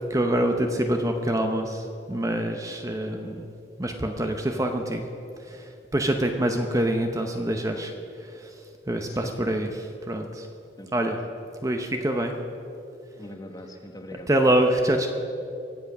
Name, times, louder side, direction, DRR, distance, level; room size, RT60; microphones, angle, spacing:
voice 1, 0.1-3.5 3.8-5.0 5.4-7.9 8.2-8.5 8.9-9.7 10.1-10.5 10.9-11.2 11.6-12.3 14.3-15.1, right 1 dB, 15° right, 4 dB, 0.7 m, -25 dB
voice 2, 9.1-9.7 10.8-11.2 13.2-14.3, left 1 dB, 20° left, 5 dB, 1.2 m, -42 dB
23.0 x 8.2 x 6.0 m, 2.8 s
head